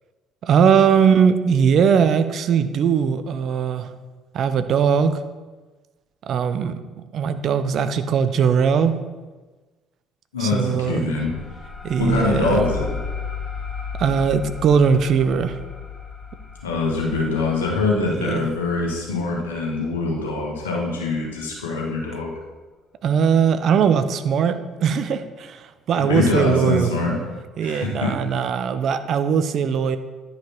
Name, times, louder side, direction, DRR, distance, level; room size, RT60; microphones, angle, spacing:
voice 1, 0.4-3.9 4.3-5.2 6.2-6.8 7.1-8.9 10.4-11.1 11.8-12.6 14.0-15.6 18.1-18.5 23.0-26.9 27.6-30.0, right 7 dB, 55° right, 11 dB, 0.6 m, -20 dB
voice 2, 10.3-11.3 12.0-12.9 16.6-22.3 26.0-27.2 27.6-28.2, left 3 dB, 80° left, -2 dB, 1.7 m, -24 dB
sound 1, 11.2-20.5, left 6 dB, 25° left, 1.2 m, -34 dB
10.5 x 5.0 x 4.5 m, 1.3 s
figure-of-eight pair, 55°, 0 cm